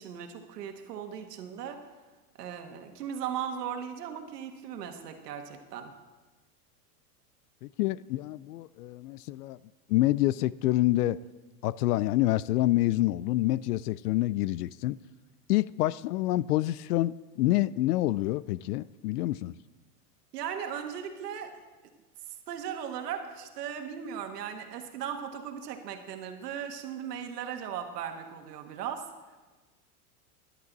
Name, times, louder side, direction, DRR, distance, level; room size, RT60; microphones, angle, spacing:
voice 1, 0.0-1.8 2.4-5.9 20.3-21.6 22.3-29.1, right 8 dB, 80° right, 1.7 m, -37 dB
voice 2, 7.6-9.6 9.9-11.2 11.6-15.0 15.5-19.5, left 16 dB, 75° left, 0.5 m, -27 dB
18.5 x 11.0 x 4.0 m
supercardioid pair, 155°, 47 cm